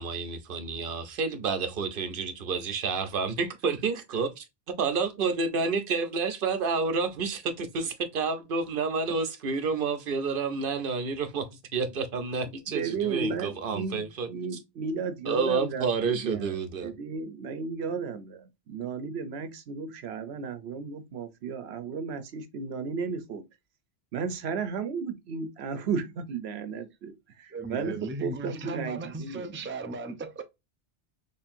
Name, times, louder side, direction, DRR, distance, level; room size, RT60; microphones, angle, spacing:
voice 1, 0.0-4.4 4.8-14.3 15.3-16.9, right 4 dB, 60° right, 0.9 m, -29 dB
voice 2, 12.4-23.4 24.1-29.6, right 5 dB, 85° right, 1.0 m, -34 dB
voice 3, 27.5-30.4, right 2 dB, 15° right, 0.4 m, -36 dB
4.4 x 3.3 x 2.5 m
omnidirectional pair, 1.0 m